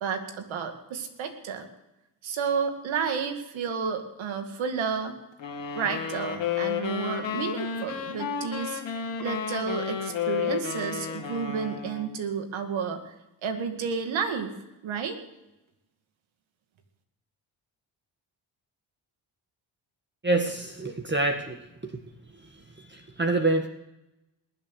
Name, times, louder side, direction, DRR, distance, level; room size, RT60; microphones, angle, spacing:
voice 1, 0.0-1.7 2.2-5.2 5.7-8.8 9.2-13.1 13.4-14.6 14.8-15.2, right 6 dB, 80° right, 6 dB, 2.2 m, -31 dB
sound 1, 5.4-12.2, left 7 dB, 70° left, 2.5 m, -32 dB
voice 2, 20.2-22.0 22.3-23.7, right 2 dB, 25° right, 4 dB, 1.7 m, -28 dB
20.5 x 7.8 x 6.6 m, 0.91 s
supercardioid pair, 60°, 46 cm